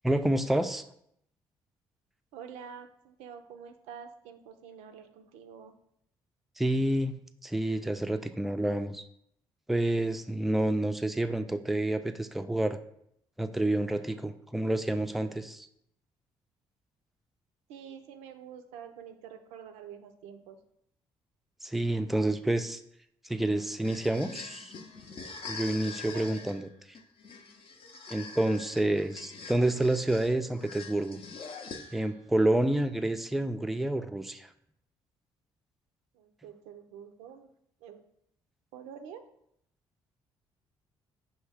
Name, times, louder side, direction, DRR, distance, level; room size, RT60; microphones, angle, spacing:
voice 1, 0.0-0.8 6.6-9.0 9.7-12.8 13.4-15.7 21.6-22.8 23.3-24.7 25.5-26.7 28.1-31.2 31.9-34.5, right 1 dB, ahead, 8 dB, 0.3 m, -29 dB
voice 2, 2.3-5.7 17.7-20.6 26.1-26.4 36.1-37.5 37.8-38.0 38.7-39.3, right 7 dB, 85° right, 7 dB, 0.4 m, -47 dB
sound 1, 23.6-32.2, left 4 dB, 55° left, 0.6 m, -44 dB
5.5 x 2.7 x 3.4 m, 0.73 s
supercardioid pair, 60°, 11 cm